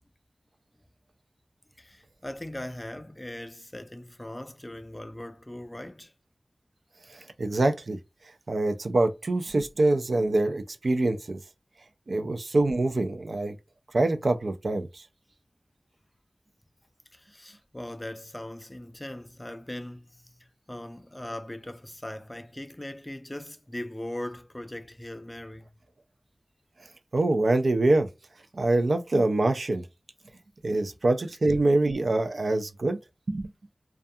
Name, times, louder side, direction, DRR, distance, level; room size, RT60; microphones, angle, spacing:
voice 1, 1.8-6.1 17.1-25.7 30.7-30.9, left 1 dB, 20° left, 0.3 m, -40 dB
voice 2, 7.4-8.0 8.5-11.4 12.1-13.5 13.9-15.0 27.1-28.1 28.5-29.8 30.6-33.0 33.3-33.5, right 2 dB, 75° right, 0.4 m, -25 dB
2.3 x 2.3 x 2.6 m
wide cardioid pair, 75°, 0 cm